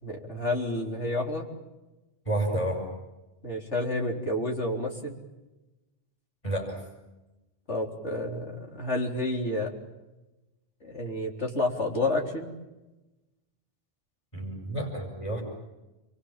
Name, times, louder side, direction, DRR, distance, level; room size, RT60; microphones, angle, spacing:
voice 1, 0.0-1.5 3.4-5.2 7.7-9.7 10.8-12.5, left 2 dB, 80° left, 1 dB, 4.3 m, -30 dB
voice 2, 2.2-2.9 6.4-6.8 14.3-15.4, right 1 dB, 25° left, 1 dB, 6.3 m, -30 dB
29.0 x 23.5 x 7.4 m, 1.1 s
omnidirectional pair, 1.2 m